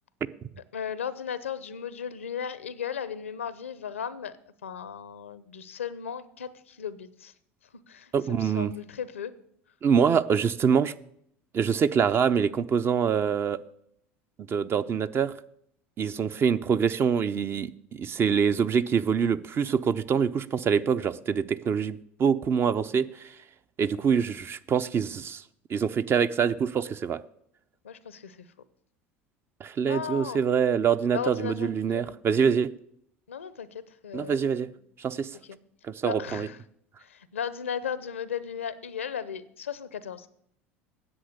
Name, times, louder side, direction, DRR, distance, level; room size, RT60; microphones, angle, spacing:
voice 1, 0.7-4.4 4.6-7.3 7.9-9.3 27.8-28.5 29.9-30.4 31.1-32.2 33.3-34.4 34.7-34.8 35.5-35.6 36.0-36.6 37.0-40.3, left 8 dB, 90° left, 16 dB, 0.7 m, -36 dB
voice 2, 8.1-8.7 9.8-10.9 11.5-13.6 14.5-15.3 16.0-23.3 23.8-25.4 25.7-27.2 29.6-32.7 34.1-34.7 35.0-35.3 35.8-36.5, right 7 dB, 35° right, 13 dB, 0.6 m, -25 dB
10.0 x 8.0 x 6.6 m, 0.71 s
hypercardioid pair, 75°, 7 cm